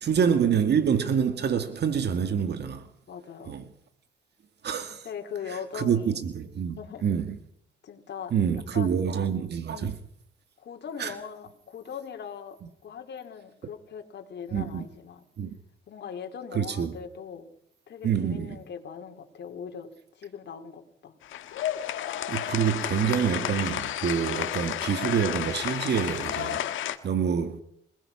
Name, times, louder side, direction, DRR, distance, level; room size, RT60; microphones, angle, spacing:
voice 1, 0.0-2.9 3.5-3.6 4.6-5.1 5.5-7.4 8.3-10.0 11.0-11.1 14.5-14.9 15.4-15.6 16.5-16.9 18.0-18.6 22.3-26.7 27.0-27.6, right 7 dB, 60° right, 2.0 m, -27 dB
voice 2, 3.1-3.6 5.0-6.3 6.6-7.0 7.8-8.9 9.7-9.9 10.6-12.6 12.8-15.2 15.9-17.5 17.9-19.9 20.2-21.2, left 7 dB, 60° left, 4.0 m, -40 dB
sound 1, 21.2-27.0, left 11 dB, 80° left, 1.6 m, -31 dB
26.0 x 20.0 x 5.9 m
cardioid pair, 90°, 20 cm